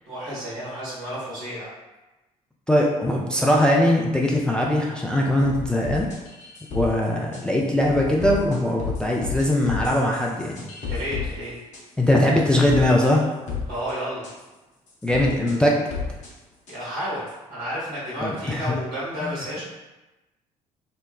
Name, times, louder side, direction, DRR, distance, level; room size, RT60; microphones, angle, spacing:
voice 1, 0.1-1.7 10.9-11.5 13.7-14.3 16.7-17.2 17.5-19.6, equal, 70° right, -8 dB, 1.2 m, -31 dB
voice 2, 2.7-6.1 6.7-10.6 12.0-13.3 15.0-15.8 18.2-18.7 19.2-19.4, left 1 dB, 5° left, -2 dB, 0.3 m, -21 dB
sound 1, 5.4-6.9 7.3-7.4 7.8-11.3 11.7-11.8 12.7-13.1 13.5-13.9 14.2-14.3 15.0-15.6 15.9-16.3 16.7-16.8 17.3-17.4, left 6 dB, 40° left, 0.6 m, -31 dB
2.9 x 2.0 x 2.3 m, 1.1 s
figure-of-eight pair, 50°, 18 cm